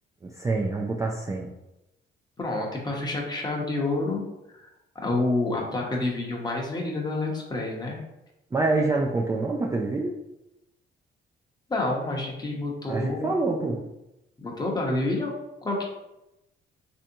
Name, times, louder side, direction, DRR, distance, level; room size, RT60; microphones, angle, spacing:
voice 1, 0.2-1.5 8.5-10.2 12.9-13.9, right 3 dB, 15° right, -2 dB, 0.3 m, -26 dB
voice 2, 2.4-4.7 4.9-8.0 11.7-13.3 14.4-15.8, left 2 dB, 20° left, -1 dB, 0.8 m, -28 dB
3.3 x 2.7 x 2.7 m, 0.91 s
cardioid pair, 90°, 20 cm